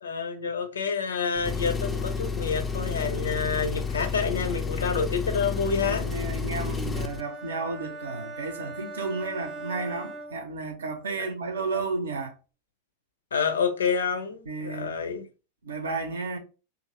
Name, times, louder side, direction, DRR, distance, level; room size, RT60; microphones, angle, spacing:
voice 1, 0.0-6.1 11.2-11.3 13.3-15.2, left 5 dB, 70° left, 0.5 m, -28 dB
Engine, 1.4-7.2, left 5 dB, 15° left, 0.3 m, -31 dB
voice 2, 5.8-12.3 14.5-14.9 15.6-16.4, right 3 dB, 70° right, 0.6 m, -32 dB
sound 1, 7.1-11.0, right 2 dB, 20° right, 0.7 m, -40 dB
2.6 x 2.5 x 2.9 m
figure-of-eight pair, 90°, 0 cm